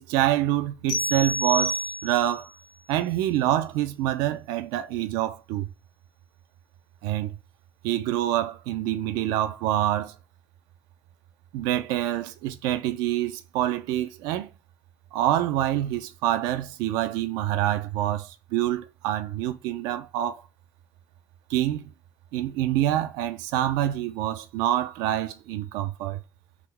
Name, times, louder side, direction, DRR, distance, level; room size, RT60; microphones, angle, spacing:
voice 1, 0.0-2.5 2.9-5.7 7.0-7.3 7.8-10.1 11.5-14.5 15.1-20.4 21.5-21.8 22.3-26.2, right 13 dB, 90° right, 0.4 m, -26 dB
sound 1, 0.9-2.4, equal, 90° left, 0.8 m, -28 dB
3.6 x 2.0 x 3.1 m
supercardioid pair, 85°, 7 cm